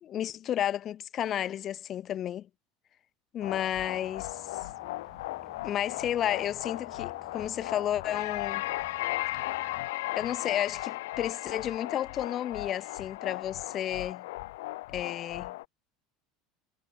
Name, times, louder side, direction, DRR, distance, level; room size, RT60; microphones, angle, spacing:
voice 1, 0.0-2.5 3.3-4.4 5.6-8.6 10.2-14.3 14.9-15.5, left 11 dB, 35° left, 2.9 m, -32 dB
sound 1, 3.4-15.7, left 19 dB, 85° left, 1.4 m, -36 dB
sound 2, 3.4-9.8, right 5 dB, 15° right, 6.1 m, -57 dB
supercardioid pair, 150°, 0 cm